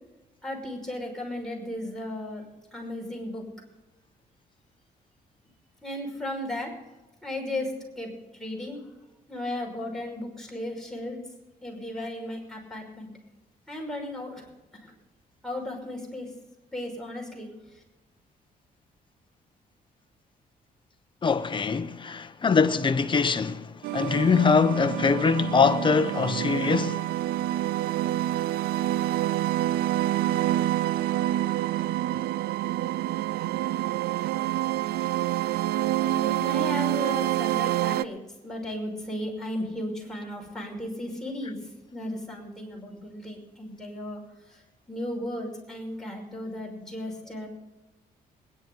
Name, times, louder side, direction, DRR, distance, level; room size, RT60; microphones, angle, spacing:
voice 1, 0.4-2.4 2.7-3.4 5.8-6.7 7.2-8.8 9.3-11.2 11.6-13.1 13.7-14.4 14.8-14.9 15.4-16.3 16.7-17.5 17.7-17.8 36.0-41.6 41.9-44.2 44.5-44.6 44.9-47.5, left 1 dB, 5° left, 5.7 m, -35 dB
voice 2, 21.2-27.1, left 5 dB, 30° left, 1.0 m, -23 dB
sound 1, 23.8-38.0, right 14 dB, 80° right, 0.4 m, -27 dB
21.0 x 11.0 x 3.9 m
cardioid pair, 100°, 16 cm